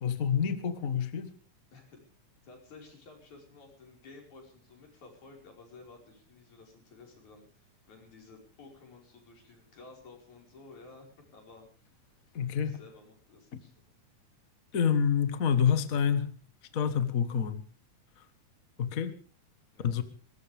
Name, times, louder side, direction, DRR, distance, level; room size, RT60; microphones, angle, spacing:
voice 1, 0.0-1.3 12.3-12.8 14.7-16.3 16.7-17.6 18.8-19.1 19.8-20.0, left 7 dB, 45° left, 10 dB, 1.1 m, -27 dB
voice 2, 2.4-11.1 11.3-11.7 12.6-13.8 19.7-19.9, left 3 dB, 70° left, 1 dB, 6.5 m, -53 dB
21.0 x 19.5 x 3.5 m, 0.40 s
omnidirectional pair, 3.5 m